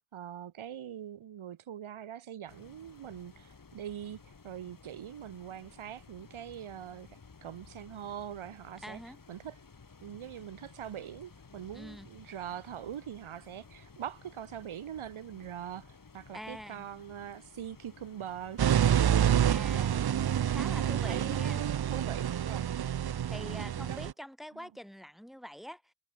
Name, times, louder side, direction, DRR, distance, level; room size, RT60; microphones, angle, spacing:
voice 1, 0.1-7.1 7.4-9.0 9.3-9.6 10.0-20.0 20.6-22.7 23.9-24.0, right 10 dB, 85° right, 1.5 m, -43 dB
sound 1, 2.5-19.8, left 4 dB, 45° left, 3.5 m, -55 dB
voice 2, 8.8-9.2 11.7-12.1 16.3-16.9 19.4-20.0 20.5-21.6 23.3-25.9, equal, ahead, 3.4 m, -45 dB
sound 2, 18.6-24.1, right 9 dB, 50° right, 0.7 m, -28 dB
cardioid pair, 65°, 48 cm